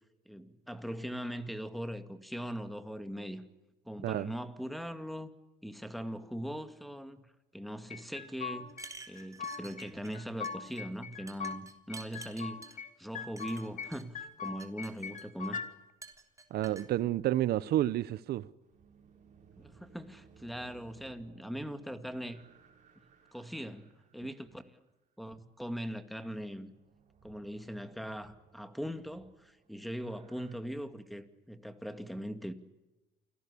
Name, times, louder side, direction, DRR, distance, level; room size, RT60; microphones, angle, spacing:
voice 1, 0.3-3.4 3.9-5.3 5.6-7.2 7.5-8.7 9.1-15.6 19.6-22.4 23.0-23.1 23.3-24.8 25.2-26.7 27.2-32.5, equal, ahead, 2.2 m, -40 dB
sound 1, 7.9-8.9 9.1-9.9 10.1-11.6 11.9-12.9 13.1-13.9 14.1-15.7, left 6 dB, 50° left, 2.5 m, -41 dB
sound 2, 8.7-10.2 10.4-10.8 11.3-12.8 13.4-14.0 14.4-15.5 16.0-16.9, right 3 dB, 20° right, 3.5 m, -49 dB
voice 2, 16.5-18.5, right 13 dB, 70° right, 0.9 m, -30 dB
sound 3, 18.6-24.6 26.6-30.6, right 6 dB, 45° right, 6.7 m, -61 dB
29.0 x 18.5 x 8.5 m
cardioid pair, 110°, 17 cm